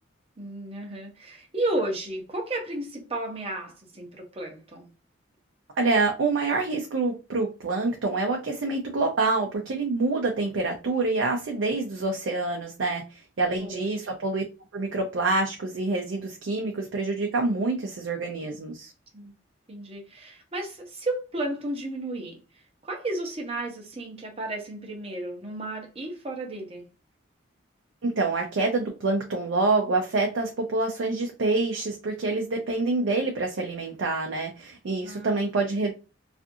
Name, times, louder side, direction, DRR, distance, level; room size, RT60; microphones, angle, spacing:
voice 1, 0.4-4.9 13.6-13.8 19.1-19.3 19.7-22.4 22.8-26.9 35.0-35.6, right 2 dB, 30° right, 0.7 m, -33 dB
voice 2, 5.8-13.0 13.4-14.4 14.7-18.9 28.0-35.9, right 3 dB, 70° right, 0.5 m, -26 dB
2.5 x 2.4 x 2.6 m
head